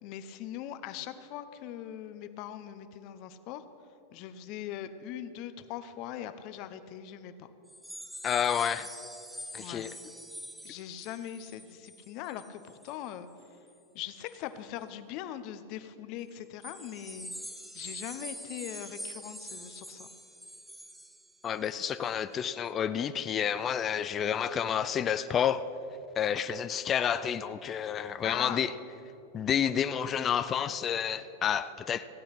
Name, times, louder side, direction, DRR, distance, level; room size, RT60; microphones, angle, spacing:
voice 1, 0.0-3.6 4.1-7.5 9.6-9.9 10.6-13.3 13.9-17.3 17.7-20.1 28.2-28.7, left 11 dB, 50° left, 11 dB, 0.8 m, -41 dB
sound 1, 7.7-13.1 13.4-13.7 14.3-14.4 16.6-21.9 22.3-22.5, equal, ahead, 0.8 m, -45 dB
voice 2, 8.2-8.9 9.5-9.9 21.4-25.7 26.2-28.7 29.3-32.1, left 8 dB, 30° left, 12 dB, 0.4 m, -30 dB
15.5 x 8.5 x 5.9 m, 2.8 s
hypercardioid pair, 115°, 0 cm